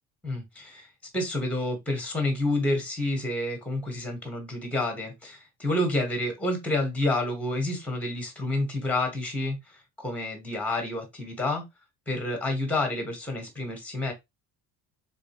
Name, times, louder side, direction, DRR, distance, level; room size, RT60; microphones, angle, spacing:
voice 1, 0.2-11.6 12.1-14.1, left 2 dB, 5° left, 1.4 m, -29 dB
4.3 x 3.2 x 3.0 m
cardioid pair, 170°, 32 cm